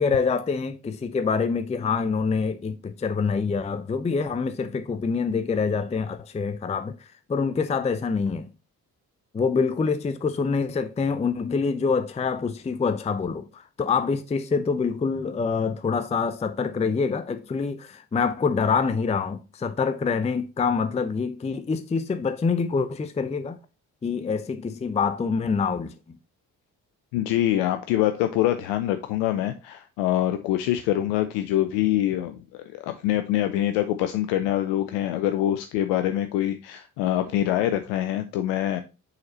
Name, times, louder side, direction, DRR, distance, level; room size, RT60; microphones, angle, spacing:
voice 1, 0.0-8.5 9.3-23.6 24.0-25.9, left 5 dB, 15° left, 0.5 m, -26 dB
voice 2, 27.1-38.8, left 13 dB, 65° left, 0.6 m, -25 dB
6.4 x 4.2 x 4.0 m
figure-of-eight pair, 40°, 47 cm